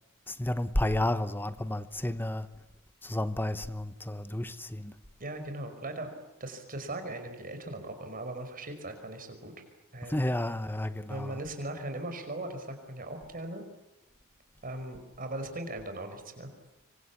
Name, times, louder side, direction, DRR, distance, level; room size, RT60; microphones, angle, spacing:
voice 1, 0.3-2.5 3.0-4.9 10.1-11.3, left 1 dB, 10° left, 1.0 m, -31 dB
voice 2, 5.2-6.1 6.4-9.5 9.9-10.2 11.1-13.6 14.6-16.5, right 1 dB, 40° right, 5.3 m, -39 dB
26.0 x 24.5 x 8.6 m
head